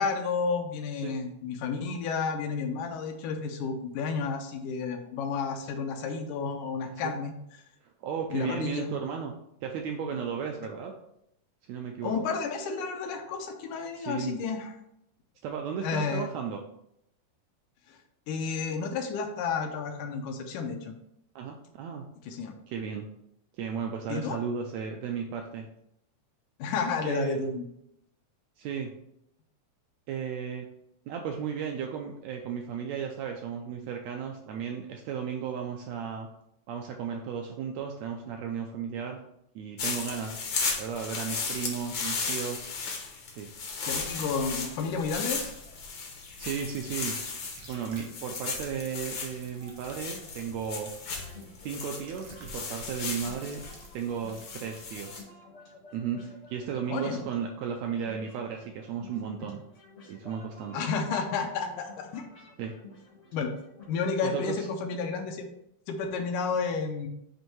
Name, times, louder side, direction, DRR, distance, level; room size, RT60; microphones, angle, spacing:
voice 1, 0.0-7.3 8.3-8.9 12.0-14.7 15.8-16.3 17.9-18.0 18.3-20.9 22.2-22.5 24.1-24.4 26.6-27.7 43.9-45.4 56.7-57.2 60.7-62.2 63.3-63.5 63.9-65.5 65.9-67.1, left 5 dB, 80° left, 4 dB, 2.2 m, -31 dB
voice 2, 6.9-7.2 7.8-9.3 9.6-10.9 11.7-12.3 14.0-14.4 15.4-16.6 21.3-22.1 22.7-23.1 23.6-25.7 27.0-27.4 28.6-29.0 30.1-30.7 31.1-36.3 36.7-39.2 39.5-40.4 40.8-42.7 43.3-43.5 46.4-47.1 47.7-50.9 51.6-53.6 53.9-55.3 55.9-59.6 60.1-60.9 62.6-62.8 64.2-64.7, right 7 dB, 80° right, 3 dB, 1.6 m, -35 dB
sound 1, 39.8-55.2, left 4 dB, 65° left, 1.2 m, -36 dB
sound 2, 46.6-46.7 47.0-47.1 47.4-48.6 49.2-54.5, right 4 dB, 65° right, 1.2 m, -53 dB
sound 3, 51.1-63.8, left 2 dB, 40° left, 0.9 m, -52 dB
7.9 x 2.7 x 4.4 m, 0.77 s
omnidirectional pair, 3.6 m